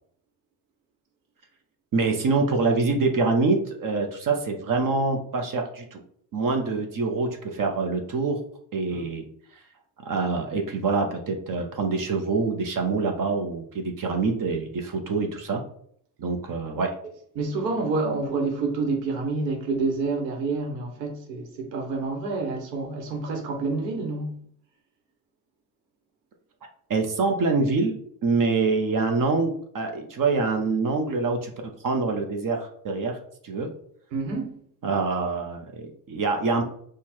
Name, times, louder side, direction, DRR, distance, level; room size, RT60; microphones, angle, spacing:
voice 1, 1.9-6.0 6.3-8.4 8.7-9.2 10.0-15.6 16.2-16.9 26.9-31.5 31.8-33.2 33.4-33.7 34.8-36.6, right 3 dB, 45° right, 0.9 m, -25 dB
voice 2, 17.3-24.3 34.1-34.6, right 3 dB, 90° right, 1.3 m, -28 dB
4.5 x 2.4 x 4.3 m
supercardioid pair, 75°, 47 cm